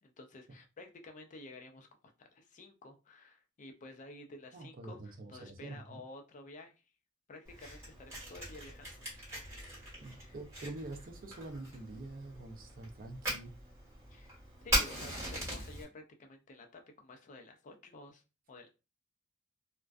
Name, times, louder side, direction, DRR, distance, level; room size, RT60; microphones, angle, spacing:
voice 1, 0.0-1.9 2.2-6.7 7.3-9.0 10.2-10.3 14.1-14.3 14.6-18.2 18.5-18.7, left 2 dB, 40° left, 0.4 m, -52 dB
voice 2, 4.5-6.0 10.0-13.5, right 2 dB, 45° right, 0.5 m, -46 dB
Fire, 7.4-15.8, equal, 15° right, 1.4 m, -40 dB
2.4 x 2.2 x 2.3 m
head